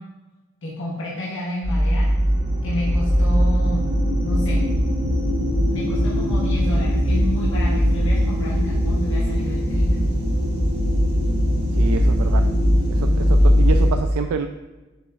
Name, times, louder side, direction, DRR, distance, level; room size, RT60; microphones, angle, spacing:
voice 1, 0.6-2.1 2.6-3.8 4.2-4.6 5.7-10.0, left 1 dB, 65° left, -7 dB, 1.2 m, -30 dB
sound 1, 1.6-13.9, equal, 25° right, 1.7 m, -19 dB
voice 2, 11.7-12.4 12.9-14.5, right 6 dB, 85° right, 6 dB, 0.3 m, -27 dB
7.0 x 6.1 x 2.3 m, 1.2 s
head